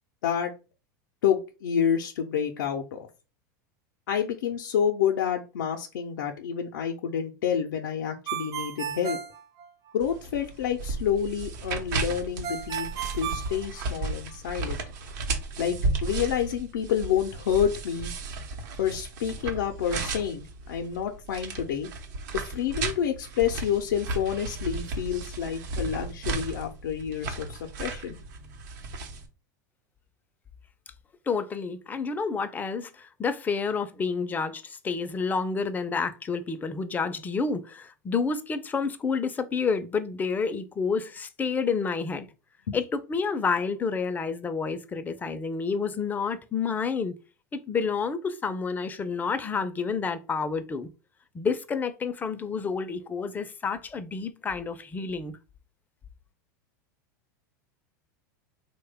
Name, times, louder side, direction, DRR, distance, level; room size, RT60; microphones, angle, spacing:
voice 1, 1.2-3.1 4.1-9.2 9.9-14.8 15.6-18.1 18.8-21.9 22.3-28.2 42.7-42.8, left 8 dB, 85° left, 0.5 m, -28 dB
Ringtone, 8.3-10.2 12.4-14.3, right 8 dB, 40° right, 0.7 m, -34 dB
sound 1, 10.0-29.3, right 3 dB, 70° right, 0.8 m, -34 dB
voice 2, 31.3-42.3 42.7-47.1 47.5-50.9 51.3-55.3, left 5 dB, 15° left, 0.4 m, -29 dB
3.1 x 2.2 x 3.4 m
supercardioid pair, 115°, 10 cm